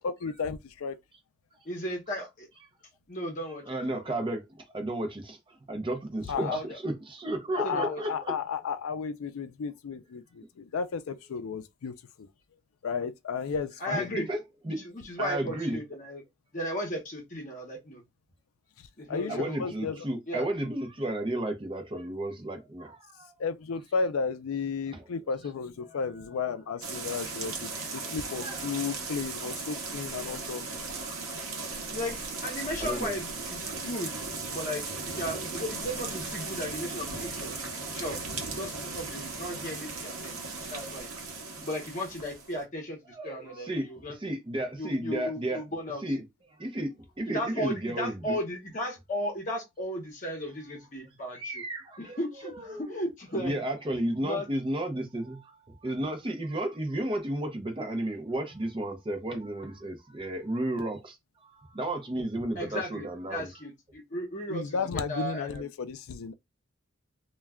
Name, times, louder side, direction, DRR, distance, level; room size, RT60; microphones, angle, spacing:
voice 1, 0.0-1.0 6.3-6.6 7.6-12.3 12.8-14.2 18.8-20.0 23.4-30.7 64.5-66.3, left 5 dB, 85° left, 0.4 m, -33 dB
voice 2, 1.6-2.5 3.1-3.6 6.3-6.8 7.6-8.0 13.8-14.3 14.7-16.2 16.5-18.0 19.0-19.7 20.3-20.5 31.9-34.1 34.5-37.6 37.9-38.2 38.5-40.4 40.7-41.1 41.6-44.1 44.8-46.0 47.3-51.6 52.0-53.5 54.2-54.5 62.6-65.7, equal, 35° left, 0.8 m, -35 dB
voice 3, 3.7-8.3 13.9-14.8 15.2-15.8 19.3-23.3 24.9-25.1 25.8-26.1 27.8-28.1 28.4-28.8 30.9-31.2 32.8-33.1 43.1-45.6 46.0-46.2 46.6-48.4 51.3-52.2 52.4-52.8 53.4-61.2 61.4-63.5, right 1 dB, 25° right, 0.5 m, -33 dB
sound 1, 26.8-42.6, right 3 dB, 90° right, 0.7 m, -37 dB
2.2 x 2.2 x 3.4 m
head